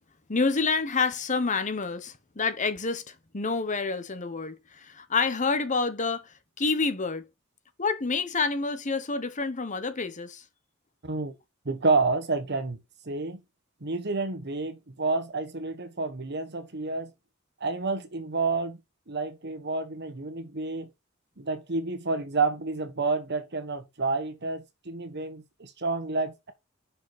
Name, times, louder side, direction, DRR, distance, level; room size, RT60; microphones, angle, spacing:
voice 1, 0.3-7.2 7.8-10.4, left 4 dB, 35° left, 1.1 m, -28 dB
voice 2, 11.0-11.4 11.6-12.8 13.0-13.4 13.8-17.1 17.6-18.8 19.1-20.9 21.4-26.5, right 3 dB, 55° right, 1.3 m, -29 dB
6.2 x 5.4 x 5.8 m
head